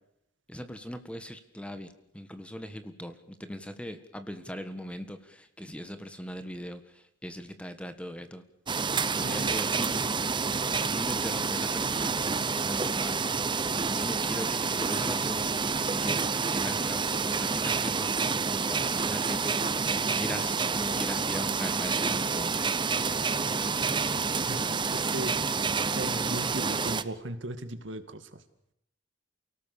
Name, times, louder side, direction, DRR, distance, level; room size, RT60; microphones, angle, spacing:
voice 1, 0.5-8.4 9.2-10.0 10.7-12.2 12.5-13.3 13.9-19.6 20.1-22.9, equal, 5° left, 9 dB, 1.6 m, -39 dB
sound 1, 8.7-27.0, right 5 dB, 25° right, 0.9 m, -28 dB
voice 2, 9.0-9.6 24.4-25.4 25.9-28.4, right 1 dB, 75° right, 9 dB, 2.2 m, -38 dB
29.0 x 18.5 x 7.0 m, 0.76 s
head